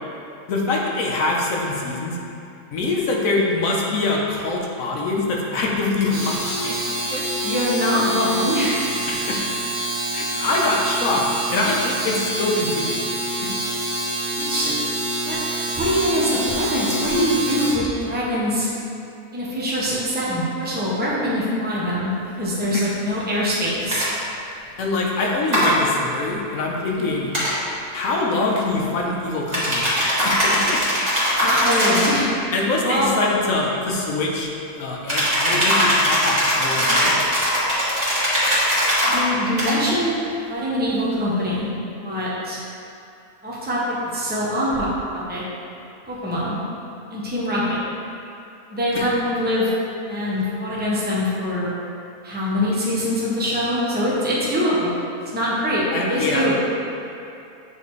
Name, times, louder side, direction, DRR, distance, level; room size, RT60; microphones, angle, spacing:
voice 1, 0.5-2.2 2.7-6.8 7.1-7.3 9.1-9.4 10.1-13.1 13.4-13.5 22.7-22.9 24.8-27.3 27.9-29.8 30.3-30.8 32.5-37.2 48.9-49.1 55.9-56.6, left 2 dB, 70° left, -2 dB, 1.2 m, -24 dB
Domestic sounds home sounds, 6.0-17.9, right 1 dB, 60° right, 1.4 m, -26 dB
voice 2, 7.4-8.8 14.3-14.7 15.3-15.4 15.8-18.7 19.3-24.1 27.0-27.1 31.4-32.3 32.8-33.1 39.1-40.2 40.5-41.7 42.0-42.6 43.4-45.4 46.1-46.6 47.1-47.8 48.7-49.7 50.1-51.7 52.2-55.0 55.3-56.6, equal, 10° right, -7 dB, 0.9 m, -23 dB
sound 1, 23.9-24.1 25.5-25.7 27.3-27.5 29.5-32.2 35.1-39.2 39.6-39.8, equal, 30° right, 1.6 m, -20 dB
8.2 x 4.1 x 3.2 m, 2.6 s
omnidirectional pair, 1.5 m